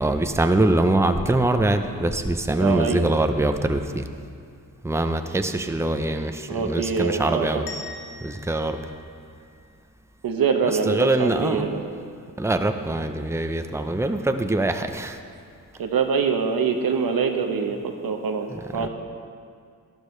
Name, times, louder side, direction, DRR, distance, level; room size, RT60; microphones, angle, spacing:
voice 1, 0.0-4.0 4.8-7.6 8.2-8.8 10.9-11.7 12.4-15.2 18.5-18.9, right 2 dB, 10° right, 7 dB, 0.7 m, -23 dB
voice 2, 2.6-3.1 6.5-7.7 10.2-11.9 15.8-18.5 18.7-18.9, right 5 dB, 75° right, 5 dB, 1.0 m, -24 dB
sound 1, 7.7-10.4, left 3 dB, 90° left, 1.2 m, -43 dB
12.0 x 12.0 x 3.2 m, 2.2 s
cardioid pair, 55°, 35 cm